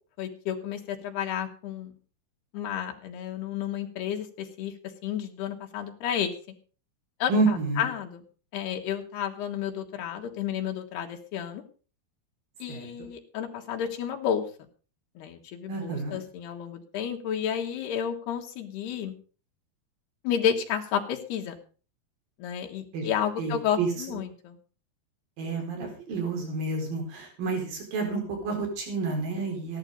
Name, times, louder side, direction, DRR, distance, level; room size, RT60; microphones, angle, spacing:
voice 1, 0.2-1.9 2.5-4.7 5.0-6.3 7.2-8.2 8.5-11.6 12.6-14.4 15.2-19.2 20.2-21.5 22.4-24.6, left 9 dB, 90° left, 3 dB, 3.8 m, -31 dB
voice 2, 7.3-7.9 12.7-13.1 15.7-16.2 22.9-23.1 23.4-24.2 25.4-29.8, right 3 dB, 65° right, 2 dB, 6.1 m, -29 dB
15.5 x 11.0 x 5.3 m, 0.39 s
omnidirectional pair, 4.5 m